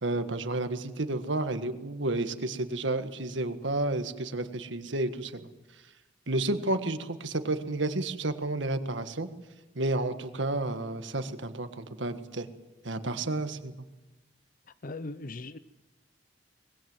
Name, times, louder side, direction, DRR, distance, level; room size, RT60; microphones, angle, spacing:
voice 1, 0.0-5.5 6.3-9.3 9.7-12.5 12.8-13.7, right 2 dB, 90° right, 9 dB, 1.7 m, -31 dB
voice 2, 14.8-15.6, left 2 dB, 50° left, 13 dB, 0.7 m, -38 dB
24.5 x 20.5 x 8.0 m, 1.1 s
head